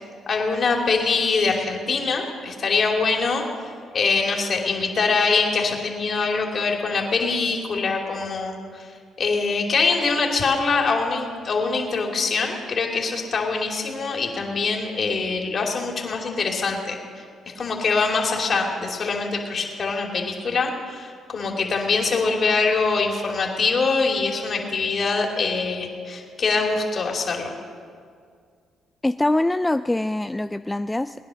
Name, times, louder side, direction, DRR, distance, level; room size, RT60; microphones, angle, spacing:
voice 1, 0.3-3.4 3.9-8.9 9.2-17.2 17.6-27.5, left 4 dB, 45° left, 1 dB, 2.9 m, -24 dB
voice 2, 29.0-31.2, left 1 dB, 10° left, 10 dB, 0.3 m, -23 dB
20.5 x 10.5 x 6.4 m, 2.1 s
cardioid pair, 90°, 0 cm